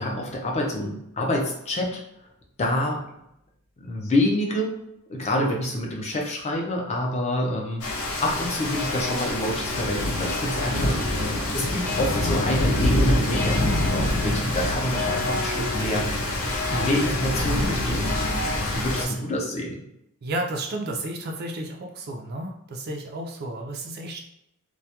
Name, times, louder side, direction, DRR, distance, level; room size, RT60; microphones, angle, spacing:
voice 1, 0.0-2.0 2.6-3.0 3.8-4.8 5.1-11.0 11.5-16.1 16.7-18.2 18.7-19.8, left 1 dB, 30° left, -1 dB, 0.5 m, -27 dB
Rain, 7.8-19.1, left 1 dB, 80° left, 0.6 m, -25 dB
voice 2, 20.2-24.2, right 2 dB, 50° right, 1 dB, 0.3 m, -32 dB
2.2 x 2.1 x 2.8 m, 0.80 s
head